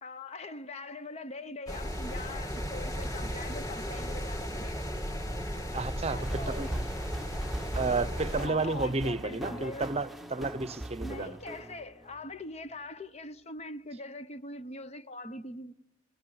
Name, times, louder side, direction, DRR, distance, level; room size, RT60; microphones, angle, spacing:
voice 1, 0.0-4.9 6.1-6.8 8.3-9.9 11.0-15.8, left 2 dB, 35° left, 0.9 m, -42 dB
sound 1, 1.7-8.5, equal, 20° left, 2.4 m, -35 dB
voice 2, 5.7-6.7 7.7-11.4, right 3 dB, 35° right, 0.8 m, -32 dB
sound 2, 6.2-12.2, right 1 dB, ahead, 1.0 m, -40 dB
29.5 x 18.5 x 9.7 m
head